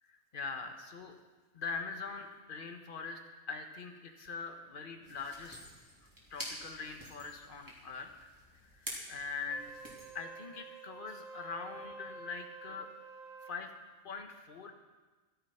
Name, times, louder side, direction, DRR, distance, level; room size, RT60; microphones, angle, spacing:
voice 1, 0.1-1.2 1.5-3.2 3.5-5.6 6.3-9.7 10.1-12.9 13.4-13.7 14.0-14.7, left 4 dB, 45° left, 5 dB, 1.4 m, -43 dB
sound 1, 5.0-10.1, equal, 15° right, 3.2 m, -48 dB
Wind instrument woodwind instrument, 9.4-13.7, right 4 dB, 85° right, 2.2 m, -50 dB
14.0 x 11.5 x 5.7 m, 1.3 s
omnidirectional pair, 1.3 m